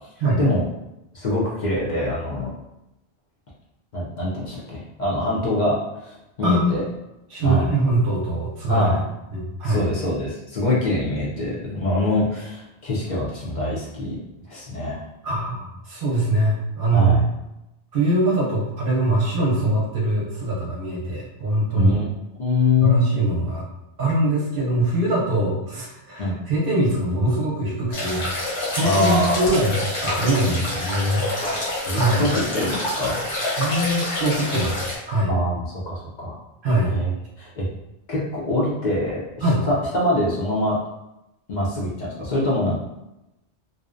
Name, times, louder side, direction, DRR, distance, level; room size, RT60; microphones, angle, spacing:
voice 1, 1.1-2.5 3.9-6.8 7.4-7.7 8.7-9.0 9.6-14.2 14.5-15.0 16.9-17.2 21.7-22.1 22.4-23.0 26.2-26.4 28.8-29.6 31.4-33.2 35.3-36.4 36.9-37.1 37.4-37.7 38.1-40.8 41.5-42.8, left 1 dB, 50° left, -5 dB, 0.6 m, -24 dB
voice 2, 6.4-6.8 7.3-8.9 9.3-9.8 15.2-17.1 17.9-21.9 22.8-23.6 24.0-31.3 31.9-32.2 33.6-35.3 36.6-36.9 39.4-39.6, right 1 dB, 60° right, -4 dB, 0.7 m, -22 dB
sound 1, 27.9-35.0, left 1 dB, 80° left, 1.2 m, -27 dB
2.6 x 2.0 x 2.4 m, 0.92 s
omnidirectional pair, 1.2 m